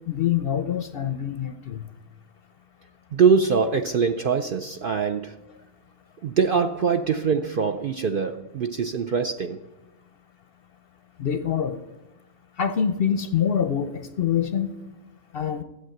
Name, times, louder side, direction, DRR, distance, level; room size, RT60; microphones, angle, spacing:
voice 1, 0.1-1.9 11.2-11.8 12.6-14.7 15.3-15.6, left 8 dB, 55° left, 11 dB, 0.7 m, -25 dB
voice 2, 3.1-5.4 6.2-9.6, right 5 dB, 60° right, 6 dB, 0.6 m, -23 dB
13.0 x 8.0 x 7.7 m, 1.0 s
omnidirectional pair, 1.4 m